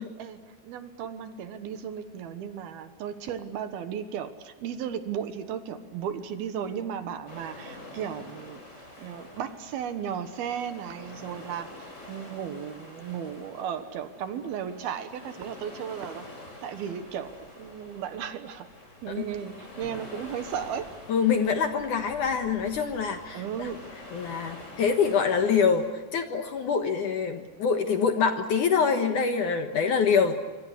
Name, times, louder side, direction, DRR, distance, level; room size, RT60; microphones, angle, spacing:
voice 1, 0.0-8.6 9.0-16.3 16.6-18.7 19.0-20.9 23.3-23.8, right 8 dB, 70° right, 10 dB, 3.0 m, -35 dB
sound 1, 7.3-25.9, left 1 dB, 15° left, 6.2 m, -47 dB
voice 2, 21.1-23.7 24.1-30.3, left 6 dB, 60° left, 6 dB, 2.3 m, -25 dB
25.5 x 25.0 x 8.2 m, 1.3 s
omnidirectional pair, 4.9 m